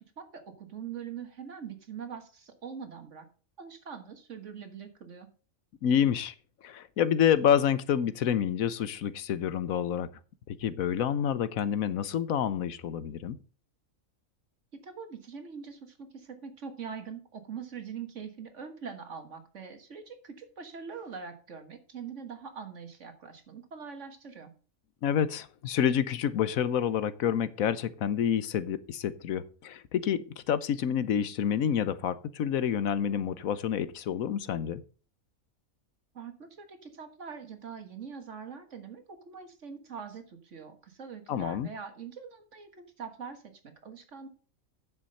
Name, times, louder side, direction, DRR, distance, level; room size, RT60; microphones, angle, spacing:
voice 1, 0.0-3.3 3.6-5.3 14.7-24.5 36.1-44.3, right 6 dB, 60° right, 7 dB, 1.9 m, -43 dB
voice 2, 5.8-6.3 6.6-10.1 10.5-13.4 25.0-34.8 41.3-41.7, left 9 dB, 90° left, 15 dB, 1.2 m, -28 dB
9.6 x 7.1 x 5.4 m, 0.38 s
omnidirectional pair, 1.4 m